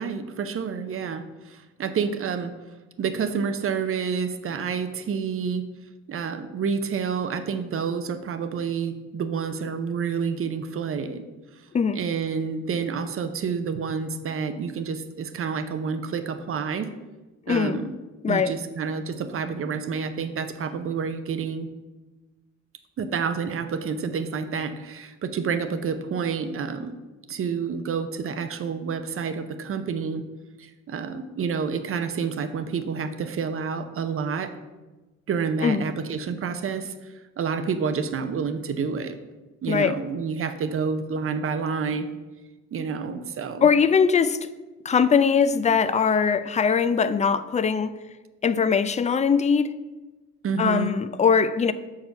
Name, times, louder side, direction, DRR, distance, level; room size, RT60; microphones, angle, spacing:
voice 1, 0.0-2.5 3.0-5.6 6.1-11.2 11.9-16.9 17.5-17.9 18.3-21.7 23.0-26.9 27.3-30.2 30.6-34.5 35.3-36.9 37.4-39.2 39.6-42.1 42.7-43.7 50.4-50.9, right 6 dB, 45° right, 0.7 m, -29 dB
voice 2, 17.5-17.8 18.2-18.6 35.6-35.8 39.7-40.0 43.6-44.4 44.8-47.9 48.4-49.7 50.6-51.7, left 6 dB, 25° left, 0.4 m, -21 dB
6.2 x 4.7 x 5.7 m
cardioid pair, 90°, 30 cm